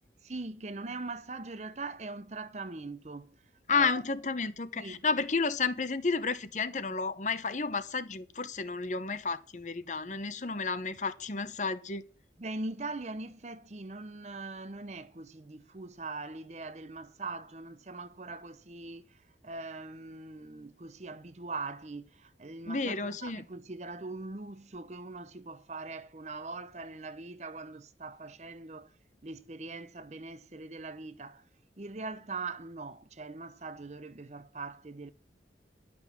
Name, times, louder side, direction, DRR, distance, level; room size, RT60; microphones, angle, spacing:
voice 1, 0.2-3.4 3.7-4.0 4.8-5.0 12.4-28.9 29.2-31.4 31.8-35.1, right 3 dB, 40° right, 0.7 m, -41 dB
voice 2, 3.7-12.0 22.7-23.4, left 4 dB, 45° left, 0.9 m, -31 dB
11.5 x 6.2 x 7.1 m
head